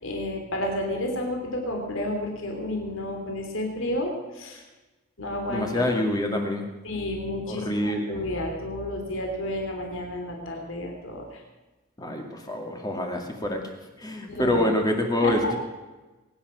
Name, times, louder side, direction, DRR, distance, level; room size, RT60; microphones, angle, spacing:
voice 1, 0.0-4.6 5.2-5.9 6.8-11.2 14.3-14.6 15.2-15.5, left 1 dB, 65° left, 2 dB, 3.3 m, -31 dB
voice 2, 5.5-6.6 7.5-8.3 12.0-13.6 14.0-15.6, left 1 dB, 20° left, 2 dB, 2.2 m, -26 dB
22.0 x 10.5 x 6.3 m, 1.1 s
head